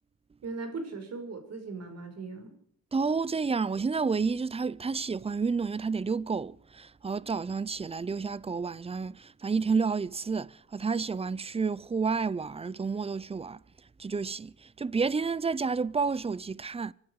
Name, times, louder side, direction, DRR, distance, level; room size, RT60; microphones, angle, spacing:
voice 1, 0.4-2.6, right 3 dB, 55° right, 5.3 m, -38 dB
voice 2, 2.9-13.6 14.0-16.9, right 5 dB, 20° right, 0.6 m, -30 dB
25.5 x 11.5 x 4.8 m
cardioid pair, 90°, 30 cm